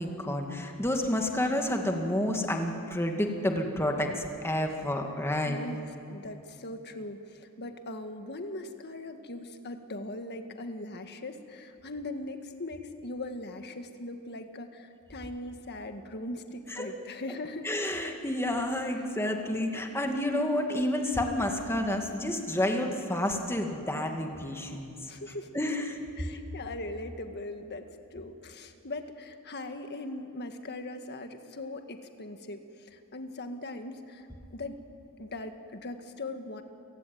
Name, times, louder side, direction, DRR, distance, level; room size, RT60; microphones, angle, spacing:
voice 1, 0.0-5.6 16.8-16.9 17.6-24.9 25.5-26.0, left 1 dB, 10° left, 3 dB, 2.1 m, -30 dB
voice 2, 5.4-17.7 19.0-19.1 25.1-25.5 26.2-34.3 34.5-34.8 35.2-36.6, left 2 dB, 50° left, 7 dB, 1.7 m, -40 dB
30.0 x 16.5 x 9.3 m, 2.7 s
head